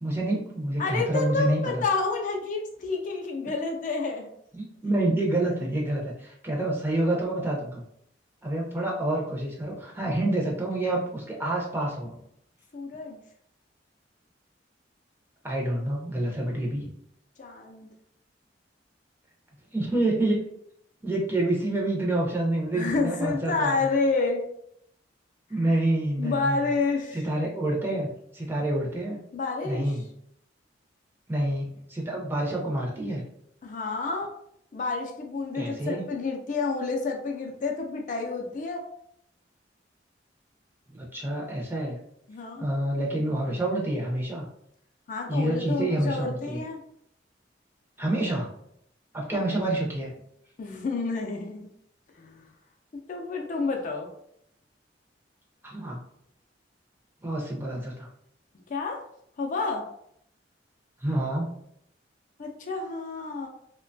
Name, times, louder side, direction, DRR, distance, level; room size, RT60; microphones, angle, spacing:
voice 1, 0.0-1.8 4.5-7.8 8.4-12.2 15.4-16.9 19.7-20.4 21.0-23.9 25.5-26.6 27.1-28.1 28.3-29.2 29.6-30.1 31.3-33.2 35.5-36.0 40.9-42.0 42.6-44.5 45.3-46.6 48.0-48.5 49.1-50.1 55.6-56.0 57.2-58.1 61.0-61.5, right 1 dB, 10° right, -3 dB, 0.6 m, -28 dB
voice 2, 0.8-4.3 12.7-13.2 17.4-17.9 22.7-24.4 26.2-27.2 29.3-29.9 33.6-34.3 34.7-38.8 42.3-42.7 45.1-46.8 49.3-49.4 50.6-51.7 52.2-52.5 53.1-54.1 58.7-59.0 59.4-59.8 62.4-63.5, left 3 dB, 45° left, 2 dB, 0.4 m, -29 dB
2.9 x 2.1 x 2.6 m, 0.71 s
head